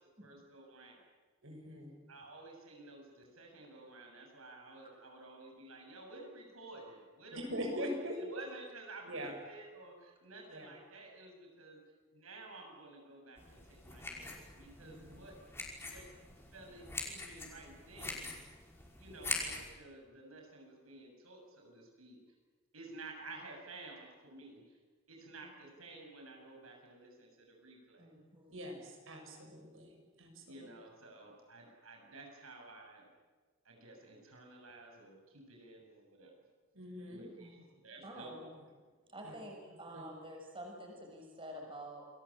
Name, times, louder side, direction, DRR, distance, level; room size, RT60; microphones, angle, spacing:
voice 1, 0.2-1.1 2.1-7.9 8.2-11.8 12.1-15.3 15.8-16.1 16.5-18.3 19.0-22.2 22.7-24.8 25.1-28.1 30.5-33.1 33.6-36.3 37.1-37.5 37.8-38.4, right 2 dB, 85° right, 1 dB, 7.7 m, -52 dB
voice 2, 1.4-1.9 7.3-8.4 9.1-9.3 10.5-10.7 14.8-15.2 28.5-30.7 36.7-37.2 39.2-39.3 39.9-40.0, equal, 65° right, 2 dB, 7.3 m, -42 dB
sound 1, 13.4-19.7, left 3 dB, 10° left, 5.5 m, -44 dB
voice 3, 28.0-28.6 37.4-37.5 38.0-38.5 39.1-42.1, right 1 dB, 25° right, 0 dB, 6.7 m, -48 dB
29.0 x 21.0 x 8.9 m, 1.4 s
head